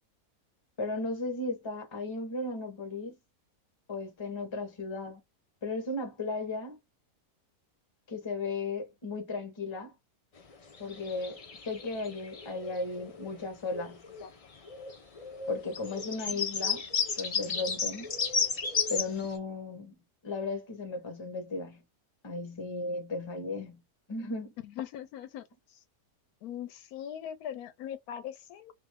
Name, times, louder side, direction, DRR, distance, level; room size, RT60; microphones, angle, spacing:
voice 1, 0.8-3.1 3.9-5.2 5.6-6.8 8.1-9.9 10.8-14.0 15.5-16.8 17.2-18.1 18.9-19.9 20.2-21.8 22.2-23.8 24.1-24.5, left 3 dB, 25° left, 0.8 m, -35 dB
sound 1, 10.4-13.4 13.7-14.3 14.6-19.3, left 5 dB, 60° left, 0.3 m, -34 dB
voice 2, 24.6-25.4 25.7-25.8 26.4-28.7, left 10 dB, 80° left, 1.1 m, -41 dB
2.6 x 2.5 x 3.2 m
omnidirectional pair, 1.6 m